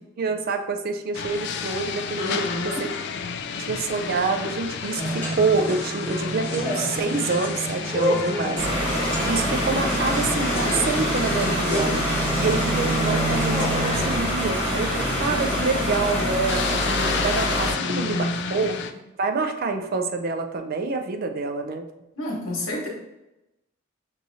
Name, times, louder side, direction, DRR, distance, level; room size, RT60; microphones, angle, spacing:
voice 1, 0.2-2.4 2.8-2.9 3.7-8.9 9.3-12.0 12.4-18.7 19.2-21.8, right 4 dB, 45° right, 6 dB, 0.4 m, -27 dB
sound 1, 1.1-18.9, left 6 dB, 55° left, 0.3 m, -32 dB
voice 2, 2.2-2.8 17.7-18.7 22.1-22.9, left 1 dB, 90° left, -2 dB, 1.3 m, -30 dB
sound 2, 5.0-14.2, right 1 dB, 10° left, 1.4 m, -29 dB
sound 3, 8.6-17.7, equal, 20° right, 1.1 m, -26 dB
5.9 x 2.8 x 2.7 m, 0.93 s
head